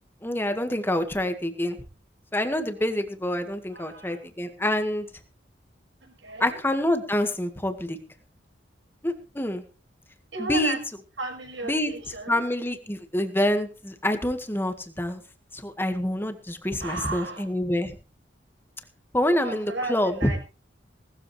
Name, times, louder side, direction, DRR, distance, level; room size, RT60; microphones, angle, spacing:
voice 1, 0.2-1.8 2.3-5.1 6.4-8.0 9.0-9.6 10.4-10.8 11.7-11.9 12.3-15.2 15.5-18.0 19.1-20.3, left 1 dB, 10° left, 7 dB, 1.7 m, -26 dB
voice 2, 3.7-4.2 6.0-6.6 10.3-10.8 11.2-12.4 16.8-17.5 19.4-20.4, right 2 dB, 85° right, 4 dB, 5.6 m, -35 dB
19.0 x 13.5 x 3.3 m, 0.33 s
head